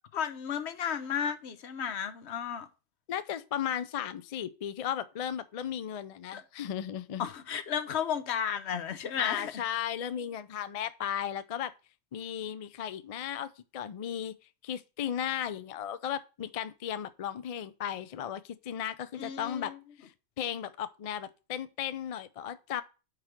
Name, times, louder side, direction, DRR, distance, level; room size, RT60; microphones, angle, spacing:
voice 1, 0.1-2.7 6.3-6.4 7.2-9.5 19.1-19.8, left 8 dB, 75° left, 1.0 m, -33 dB
voice 2, 3.1-7.3 9.2-11.7 12.1-14.3 14.6-19.7 20.0-20.1 20.4-22.8, left 9 dB, 55° left, 0.4 m, -35 dB
4.9 x 4.8 x 5.8 m
omnidirectional pair, 1.2 m